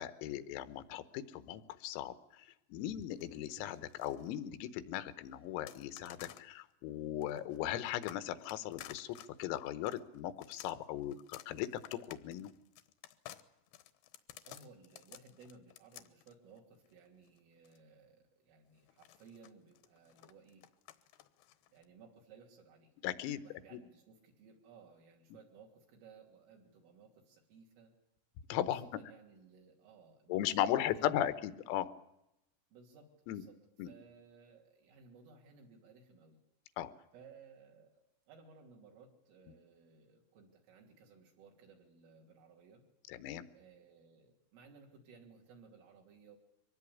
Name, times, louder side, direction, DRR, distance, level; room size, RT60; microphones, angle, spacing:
voice 1, 0.0-12.5 23.0-23.4 23.7-23.8 28.5-28.9 30.3-31.9 33.3-33.4 33.8-33.9 36.8-36.9 43.1-43.5, left 12 dB, 90° left, 13 dB, 3.9 m, -37 dB
sound 1, 3.0-4.3 5.7-6.5 7.2-17.8 18.9-21.8, left 13 dB, 75° left, 2.4 m, -54 dB
voice 2, 14.5-20.7 21.7-22.9 23.3-27.9 28.7-31.2 32.7-33.6 33.9-36.4 37.1-42.8 43.5-46.4, right 5 dB, 70° right, 0 dB, 5.4 m, -59 dB
24.0 x 19.0 x 8.6 m, 0.87 s
omnidirectional pair, 5.9 m